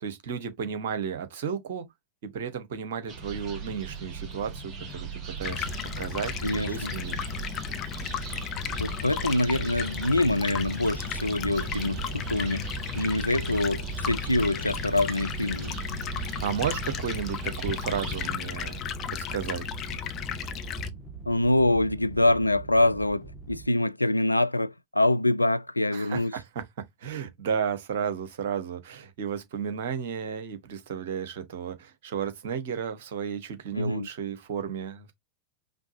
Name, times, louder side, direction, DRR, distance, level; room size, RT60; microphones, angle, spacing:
voice 1, 0.0-1.9 2.2-5.1 5.4-5.7 6.0-7.2 16.4-18.8 19.1-19.7 25.9-26.6 27.0-35.1, right 7 dB, 55° right, 1.2 m, -33 dB
sound 1, 3.1-18.3, right 5 dB, 25° right, 2.4 m, -39 dB
Stream, 5.4-20.9, left 8 dB, 30° left, 0.7 m, -35 dB
voice 2, 6.4-6.9 8.8-12.7 13.0-15.7 21.3-26.3 33.8-34.1, left 1 dB, 85° left, 0.3 m, -25 dB
sound 2, 10.9-23.7, right 6 dB, 5° left, 1.8 m, -42 dB
5.1 x 3.3 x 2.7 m
figure-of-eight pair, 90°, 0 cm